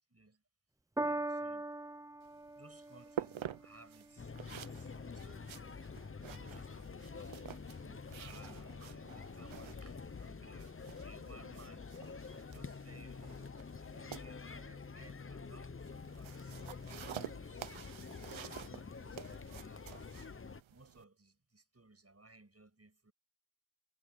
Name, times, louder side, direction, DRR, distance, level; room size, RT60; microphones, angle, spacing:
voice 1, 0.1-0.4 1.0-1.7 2.6-5.5 6.3-7.5 7.8-11.9 12.4-16.8 17.2-17.7 18.2-20.3 20.7-23.1, right 2 dB, 30° right, 7.5 m, -60 dB
Piano, 1.0-7.5 8.4-8.5, right 2 dB, 10° right, 0.5 m, -44 dB
sound 1, 2.2-21.0, right 10 dB, 90° right, 0.8 m, -50 dB
sound 2, 4.2-20.6, left 5 dB, 30° left, 0.8 m, -47 dB
wide cardioid pair, 70°, 46 cm